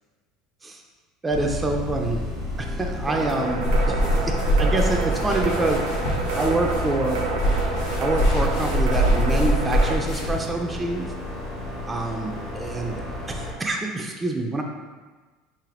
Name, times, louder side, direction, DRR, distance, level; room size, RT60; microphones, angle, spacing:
voice 1, 1.2-2.2 2.6-5.9 6.3-7.2 8.0-11.1 11.9-13.0 13.3-14.6, right 2 dB, 15° right, 2 dB, 0.3 m, -26 dB
sound 1, 1.3-13.5, left 2 dB, 60° left, 1.5 m, -32 dB
sound 2, 3.1-9.9, right 3 dB, 75° right, 0.6 m, -29 dB
sound 3, 3.6-10.5, equal, 80° left, 0.8 m, -24 dB
3.2 x 2.6 x 3.6 m, 1.3 s
supercardioid pair, 115°, 0 cm